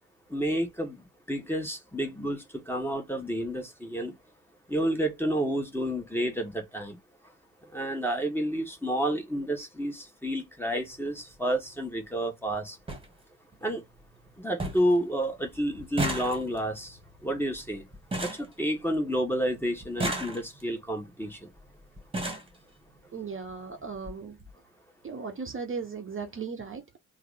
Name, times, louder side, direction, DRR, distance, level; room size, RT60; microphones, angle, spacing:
voice 1, 0.3-4.1 4.7-7.0 7.7-12.8 13.6-13.8 14.4-17.0 17.2-17.8 18.2-21.5, equal, 5° left, 1.4 m, -30 dB
sound 1, 10.7-10.9 12.2-12.3 12.5-12.6 12.9-13.1 13.5-14.0 14.3-14.4 14.6-15.0 15.2-19.2 19.8-20.8 21.6-21.7 22.0-22.6 23.5-23.6 23.9-24.1 24.4-24.5, right 1 dB, 15° right, 1.4 m, -34 dB
voice 2, 23.1-24.4 25.0-27.0, right 5 dB, 30° right, 0.9 m, -37 dB
3.6 x 2.0 x 3.6 m
hypercardioid pair, 40°, 41 cm